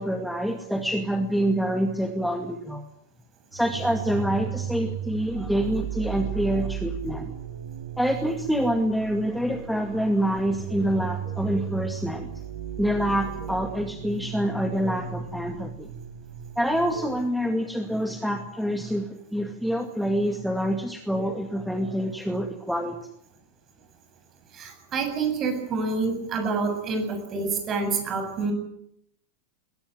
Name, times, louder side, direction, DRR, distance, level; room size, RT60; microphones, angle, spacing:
voice 1, 0.0-2.8 3.5-7.3 8.0-12.3 12.8-15.9 16.6-23.1, equal, ahead, 5 dB, 2.1 m, -26 dB
sound 1, 3.5-17.2, right 10 dB, 60° right, 3.2 m, -35 dB
voice 2, 24.5-28.5, right 4 dB, 30° right, 5 dB, 7.7 m, -27 dB
21.5 x 18.5 x 9.6 m, 0.73 s
figure-of-eight pair, 90°, 0 cm